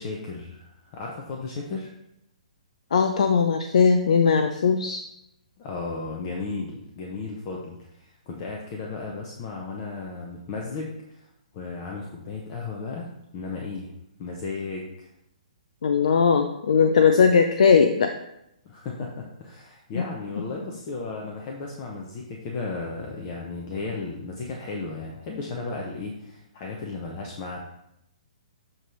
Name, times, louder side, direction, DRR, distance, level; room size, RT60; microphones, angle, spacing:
voice 1, 0.0-1.9 5.6-11.3 11.5-13.9 14.2-15.1 18.6-27.6, left 3 dB, 35° left, -1 dB, 1.0 m, -35 dB
voice 2, 2.9-5.0 15.8-18.1, left 6 dB, 60° left, 6 dB, 0.5 m, -19 dB
7.7 x 3.3 x 5.4 m, 0.83 s
figure-of-eight pair, 125°, 4 cm